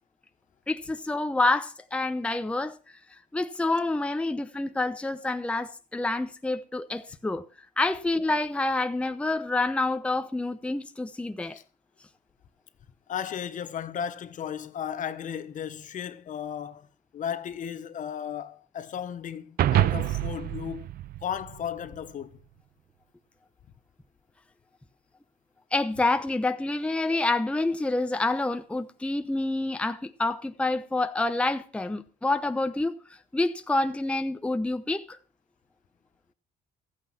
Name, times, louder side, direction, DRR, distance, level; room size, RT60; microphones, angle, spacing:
voice 1, 0.7-2.7 3.3-7.4 7.8-11.6 25.7-32.9 33.3-35.2, left 2 dB, 5° left, 0.8 m, -27 dB
voice 2, 13.1-16.9 17.1-20.9 21.2-22.3, left 8 dB, 50° left, 1.1 m, -35 dB
sound 1, 19.6-22.1, right 13 dB, 65° right, 0.6 m, -27 dB
14.0 x 8.9 x 5.7 m
cardioid pair, 110°, 17 cm